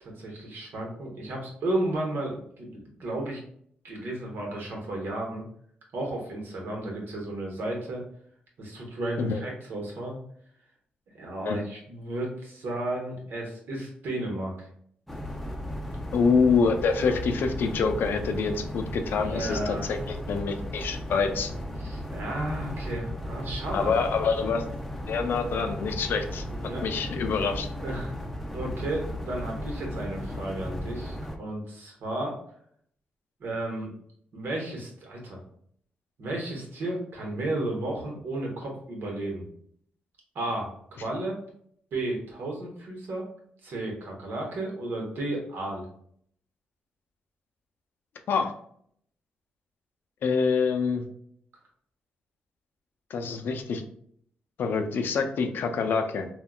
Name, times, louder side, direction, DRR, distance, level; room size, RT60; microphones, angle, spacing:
voice 1, 0.0-3.4 3.8-5.4 5.9-8.0 8.6-10.2 11.1-14.7 19.2-20.0 21.8-24.0 26.5-26.8 27.8-28.1 28.5-32.4 33.4-33.9 34.3-35.4 36.2-39.4 40.3-41.4 41.9-43.3 43.6-45.9, right 1 dB, 75° right, -1 dB, 1.0 m, -33 dB
sound 1, 15.1-31.4, left 1 dB, 5° left, 0.6 m, -35 dB
voice 2, 16.1-21.5 23.7-24.6 25.1-26.4 26.8-27.7 48.3-48.5 50.2-51.1 53.1-53.8 54.6-56.3, left 5 dB, 70° left, 6 dB, 0.4 m, -26 dB
3.5 x 2.2 x 2.2 m, 0.64 s
cardioid pair, 70°, 4 cm